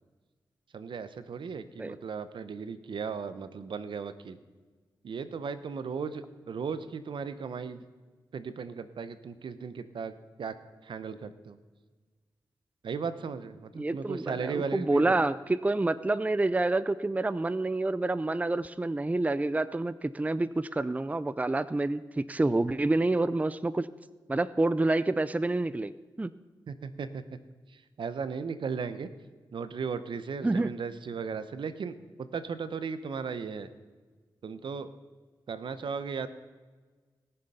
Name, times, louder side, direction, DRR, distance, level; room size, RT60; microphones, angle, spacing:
voice 1, 0.7-4.4 5.0-7.8 8.3-10.1 10.4-10.6 10.8-11.6 12.8-15.3 26.7-27.2 27.7-29.1 29.5-33.7 34.4-34.9 35.5-36.3, right 5 dB, 75° right, 12 dB, 0.9 m, -36 dB
voice 2, 13.8-23.9 24.3-25.9 26.2-26.3 30.4-30.7, right 2 dB, 15° right, 15 dB, 0.5 m, -28 dB
19.5 x 6.8 x 5.6 m, 1.4 s
cardioid pair, 60°, 8 cm